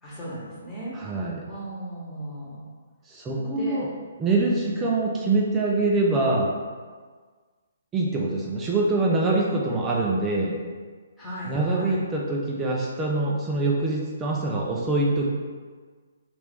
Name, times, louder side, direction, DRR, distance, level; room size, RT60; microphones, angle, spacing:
voice 1, 0.0-0.9 1.5-2.6 3.3-3.8 4.7-4.8 11.2-12.0, right 1 dB, 15° left, -8 dB, 1.1 m, -36 dB
voice 2, 0.9-1.4 3.1-3.9 4.2-6.5 7.9-10.6 11.5-15.3, right 2 dB, 15° right, -3 dB, 0.4 m, -24 dB
3.2 x 2.5 x 3.4 m, 1.5 s
figure-of-eight pair, 135°, 0 cm